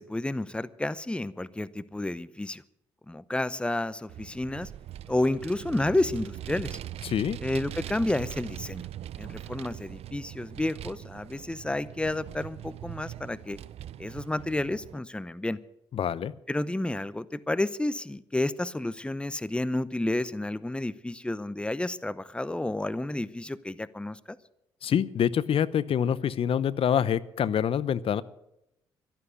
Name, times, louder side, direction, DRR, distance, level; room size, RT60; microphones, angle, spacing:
voice 1, 0.0-2.6 3.1-4.7 5.1-6.8 7.4-8.8 9.2-13.6 14.0-15.6 16.5-24.4, left 1 dB, 10° left, 17 dB, 0.8 m, -30 dB
Vehicle, 4.1-15.0, right 12 dB, 65° right, 0.6 m, -41 dB
voice 2, 7.0-7.4 15.9-16.3 24.8-28.2, left 8 dB, 55° left, 18 dB, 0.7 m, -26 dB
12.5 x 11.5 x 8.2 m, 0.84 s
supercardioid pair, 55°, 11 cm